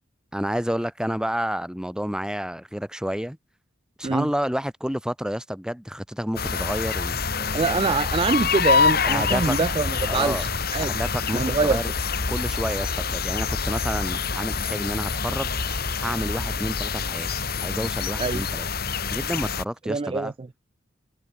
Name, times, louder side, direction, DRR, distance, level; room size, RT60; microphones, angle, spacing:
voice 1, 0.3-3.4 4.0-7.6 7.9-8.0 9.1-9.6 10.1-10.5 10.8-11.9 12.3-15.5 16.0-18.7 19.1-20.3, equal, 5° right, 1.7 m, -30 dB
sound 1, 6.4-19.6, left 5 dB, 55° left, 2.4 m, -26 dB
voice 2, 7.5-10.9 11.3-11.8 18.2-18.4 19.9-20.3, right 4 dB, 30° right, 0.4 m, -24 dB
head